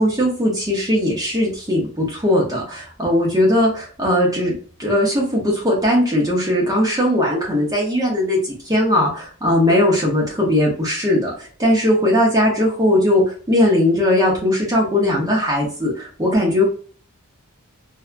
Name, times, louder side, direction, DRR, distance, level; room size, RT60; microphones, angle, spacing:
voice 1, 0.0-4.5 4.8-16.6, left 1 dB, 15° right, -3 dB, 0.7 m, -19 dB
2.7 x 2.2 x 2.4 m, 0.42 s
head